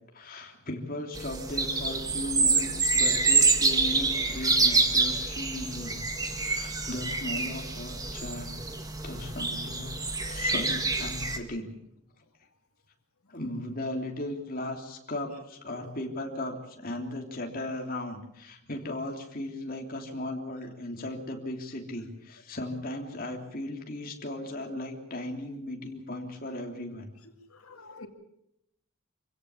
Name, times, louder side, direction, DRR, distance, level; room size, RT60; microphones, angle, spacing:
voice 1, 0.1-8.5 8.9-11.7 13.3-27.1, left 1 dB, 40° left, 3.2 m, -37 dB
sound 1, 1.1-11.4, right 4 dB, 15° right, 1.8 m, -27 dB
voice 2, 27.5-28.1, left 3 dB, 85° left, 2.6 m, -47 dB
26.5 x 16.5 x 7.2 m
head